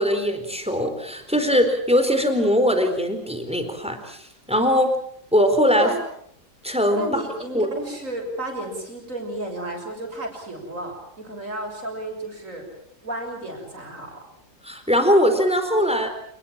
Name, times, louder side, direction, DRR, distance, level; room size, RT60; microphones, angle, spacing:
voice 1, 0.0-4.2 4.5-4.9 5.3-5.9 6.6-7.2 7.5-7.7 14.6-16.1, equal, 5° right, 7 dB, 4.2 m, -21 dB
voice 2, 6.9-12.7 13.0-14.2, right 1 dB, 45° right, 2 dB, 7.1 m, -32 dB
28.5 x 20.5 x 7.5 m, 0.67 s
omnidirectional pair, 1.9 m